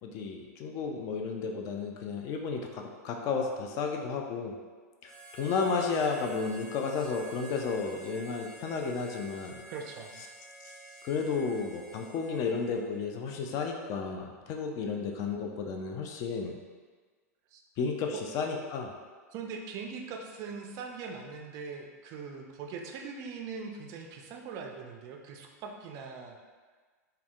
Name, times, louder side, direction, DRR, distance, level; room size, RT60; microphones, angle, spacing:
voice 1, 0.0-4.5 5.0-5.1 5.4-9.6 10.6-10.7 11.0-16.6 17.8-18.9, left 5 dB, 40° left, 2 dB, 0.3 m, -32 dB
Harmonica, 5.0-13.1, right 2 dB, 10° left, 0.7 m, -49 dB
voice 2, 9.7-10.2 17.5-17.6 18.1-18.2 19.3-26.4, right 5 dB, 40° right, 2 dB, 0.3 m, -41 dB
3.4 x 2.2 x 2.3 m, 1.4 s
figure-of-eight pair, 95°, 9 cm